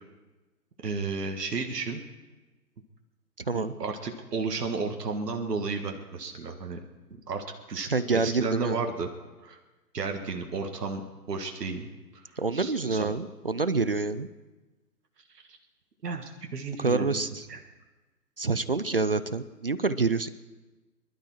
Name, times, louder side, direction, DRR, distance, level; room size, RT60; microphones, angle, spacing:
voice 1, 0.8-2.0 3.5-6.8 7.3-9.1 9.4-9.6 9.9-11.0 11.3-12.2 12.5-13.1 15.5-15.6 16.0-17.2 17.5-17.6, right 4 dB, 70° right, 3 dB, 1.8 m, -33 dB
voice 2, 7.9-8.8 12.4-14.3 16.8-17.5 18.4-20.3, right 3 dB, 40° right, 15 dB, 0.4 m, -27 dB
24.5 x 12.0 x 4.6 m, 1.2 s
figure-of-eight pair, 135°, 50 cm